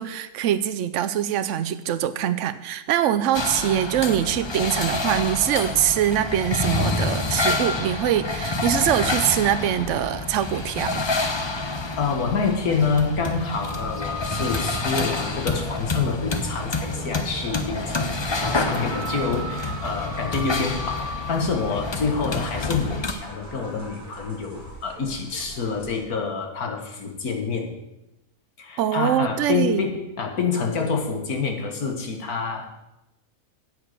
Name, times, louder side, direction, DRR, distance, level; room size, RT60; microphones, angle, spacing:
voice 1, 0.0-11.1 28.8-29.8, right 11 dB, 60° right, 13 dB, 0.9 m, -23 dB
sound 1, 3.3-23.1, left 3 dB, 30° left, 0.5 m, -28 dB
voice 2, 12.0-27.8 28.6-32.7, left 5 dB, 80° left, 2 dB, 2.1 m, -27 dB
sound 2, 13.6-26.0, equal, 10° right, 2.2 m, -38 dB
8.4 x 8.1 x 6.7 m, 0.92 s
omnidirectional pair, 1.5 m